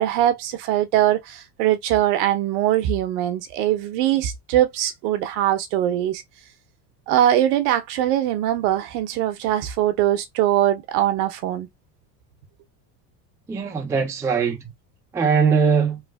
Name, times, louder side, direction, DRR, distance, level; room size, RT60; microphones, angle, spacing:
voice 1, 0.0-6.2 7.1-11.7, right 12 dB, 70° right, 0.9 m, -21 dB
voice 2, 13.5-14.7 15.1-16.0, right 6 dB, 5° right, 0.4 m, -21 dB
3.2 x 2.4 x 2.3 m
supercardioid pair, 120°, 49 cm